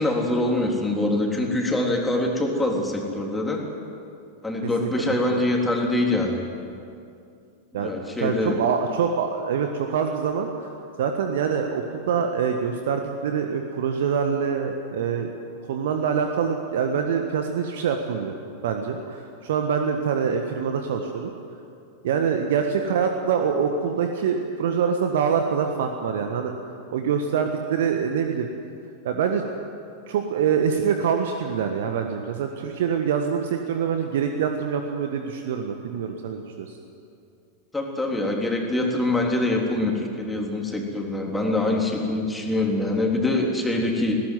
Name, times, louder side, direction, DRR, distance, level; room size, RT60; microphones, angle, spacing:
voice 1, 0.0-3.6 4.4-6.4 7.7-8.6 37.7-44.2, left 2 dB, 10° left, 0 dB, 3.6 m, -24 dB
voice 2, 7.7-10.7 11.0-15.3 15.7-18.4 18.6-21.3 22.0-26.5 26.9-28.5 29.0-29.4 30.1-36.8, right 6 dB, 55° right, 5 dB, 1.4 m, -25 dB
19.5 x 17.5 x 9.4 m, 2.5 s
figure-of-eight pair, 90°, 0 cm